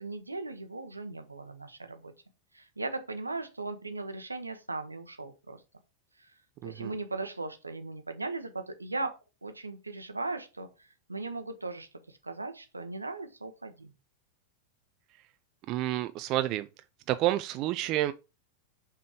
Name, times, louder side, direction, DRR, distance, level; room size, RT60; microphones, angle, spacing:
voice 1, 0.0-2.1 2.5-5.6 6.2-6.3 6.6-9.1 9.4-13.9, right 3 dB, 80° right, 0.9 m, -38 dB
voice 2, 6.6-6.9 15.7-16.7 17.1-18.1, right 14 dB, 40° right, 0.3 m, -29 dB
5.6 x 3.6 x 5.0 m
figure-of-eight pair, 90°, 0 cm